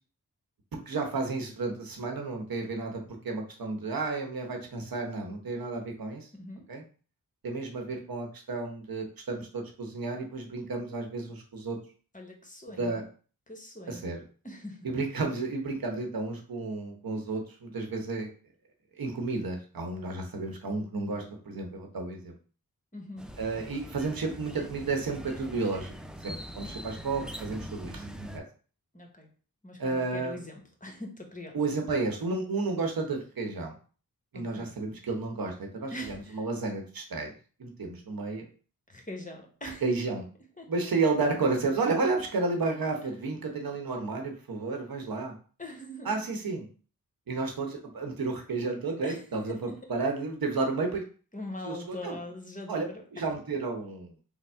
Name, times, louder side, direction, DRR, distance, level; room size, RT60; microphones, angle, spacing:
voice 1, 0.9-6.3 6.7-6.8 7.4-11.8 12.8-13.0 13.9-14.2 14.8-18.3 18.9-22.3 23.4-25.9 26.2-28.4 29.8-30.4 31.5-33.7 34.3-37.3 37.6-38.4 39.8-40.2 40.7-45.4 46.0-46.7 47.3-51.0 51.6-52.2 52.7-52.9 53.1-54.1, right 3 dB, 65° right, 2 dB, 0.9 m, -32 dB
voice 2, 6.4-6.7 12.1-13.0 13.5-14.1 14.4-14.9 22.9-23.3 28.9-29.3 29.6-31.7 34.3-34.8 35.9-36.5 38.9-39.8 40.6-40.9 45.6-46.2 49.0-49.2 49.6-49.8 51.3-53.3, left 1 dB, 20° left, 2 dB, 1.0 m, -42 dB
sound 1, 23.2-28.4, equal, ahead, 0.3 m, -43 dB
3.5 x 2.1 x 4.3 m, 0.39 s
cardioid pair, 50°, 37 cm